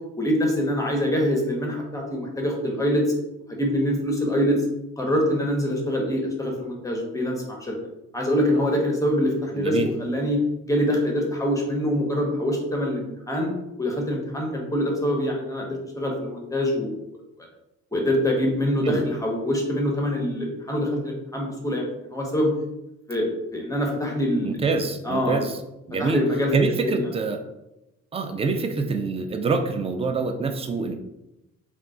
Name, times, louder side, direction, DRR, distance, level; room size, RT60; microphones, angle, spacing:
voice 1, 0.2-3.0 3.5-4.6 5.0-7.8 8.1-10.4 10.6-13.5 13.8-16.9 17.9-22.5 23.1-24.7 25.0-25.4 26.0-26.5 26.9-27.1, equal, 10° left, 0 dB, 0.7 m, -24 dB
voice 2, 9.5-9.9 18.8-19.1 24.4-25.6 25.9-26.2 26.5-27.4 28.1-31.0, right 4 dB, 20° right, 6 dB, 0.3 m, -25 dB
2.3 x 2.3 x 3.6 m, 0.91 s
cardioid pair, 90°, 30 cm